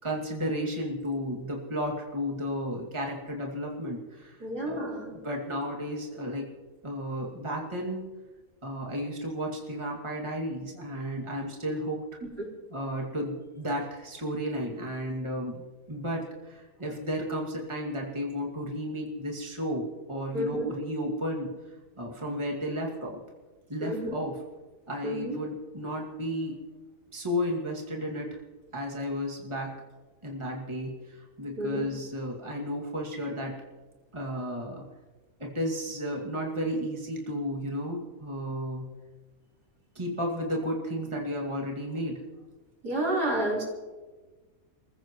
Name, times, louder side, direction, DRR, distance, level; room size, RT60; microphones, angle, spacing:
voice 1, 0.0-4.9 5.2-6.5 6.8-8.0 8.6-12.0 12.7-15.6 15.9-21.5 22.0-23.2 23.7-24.4 24.9-26.6 27.1-28.4 28.7-29.7 30.2-33.6 34.1-34.9 35.4-38.9 40.0-42.2, equal, 20° right, -1 dB, 2.4 m, -33 dB
voice 2, 4.4-5.1 12.4-12.5 20.3-20.8 23.8-24.1 25.0-25.4 31.6-31.9 42.8-43.6, right 1 dB, 85° right, -4 dB, 5.1 m, -30 dB
29.5 x 15.0 x 3.1 m, 1.3 s
omnidirectional pair, 1.7 m